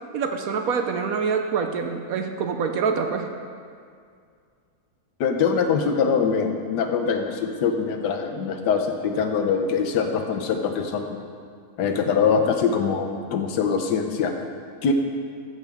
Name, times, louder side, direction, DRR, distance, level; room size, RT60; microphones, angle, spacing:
voice 1, 0.1-3.3, right 5 dB, 65° right, 5 dB, 1.0 m, -25 dB
voice 2, 5.2-11.2 11.8-14.3 14.8-14.9, left 6 dB, 85° left, 4 dB, 1.4 m, -23 dB
13.0 x 7.1 x 3.5 m, 2.2 s
omnidirectional pair, 1.8 m